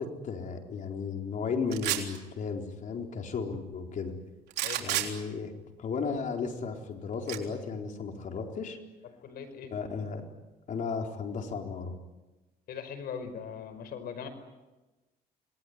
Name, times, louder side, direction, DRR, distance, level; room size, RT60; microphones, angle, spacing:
voice 1, 0.0-4.1 4.8-5.5 5.8-8.8 9.7-10.3 10.7-11.9, left 5 dB, 50° left, 3 dB, 4.2 m, -34 dB
sound 1, 1.7-2.2 4.5-5.1 7.3-7.4, right 13 dB, 80° right, 3.7 m, -30 dB
voice 2, 9.2-9.7 12.7-14.3, left 7 dB, 65° left, 8 dB, 5.4 m, -40 dB
27.0 x 20.0 x 9.6 m, 1.1 s
cardioid pair, 110°, 17 cm